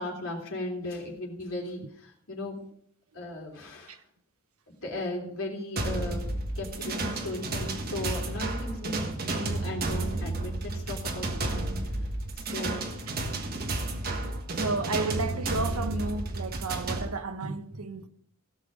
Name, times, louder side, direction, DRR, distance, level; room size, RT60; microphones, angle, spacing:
voice 1, 0.0-2.6 3.1-4.0 4.7-9.1 9.3-11.6 12.4-12.8, left 1 dB, 65° left, 3.5 m, -36 dB
sound 1, 5.8-17.1, right 2 dB, 45° right, 1.4 m, -32 dB
voice 2, 12.5-12.9 13.7-18.1, right 3 dB, 85° right, 1.1 m, -34 dB
17.0 x 6.4 x 5.1 m
head